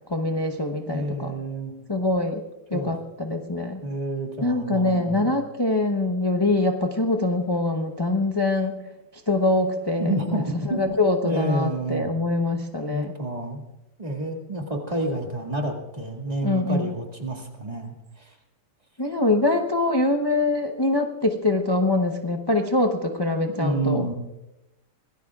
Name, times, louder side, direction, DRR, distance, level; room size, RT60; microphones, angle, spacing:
voice 1, 0.1-1.3 1.9-2.4 2.7-3.8 4.4-8.8 9.3-13.1 16.4-16.9 19.0-24.1, left 2 dB, 25° left, 3 dB, 0.6 m, -24 dB
voice 2, 0.9-1.7 2.7-2.9 3.8-5.3 10.0-10.9 11.2-12.1 12.9-13.6 14.0-18.4 23.5-24.1, right 1 dB, 25° right, 1 dB, 2.1 m, -29 dB
25.0 x 18.5 x 2.4 m, 0.94 s
omnidirectional pair, 1.8 m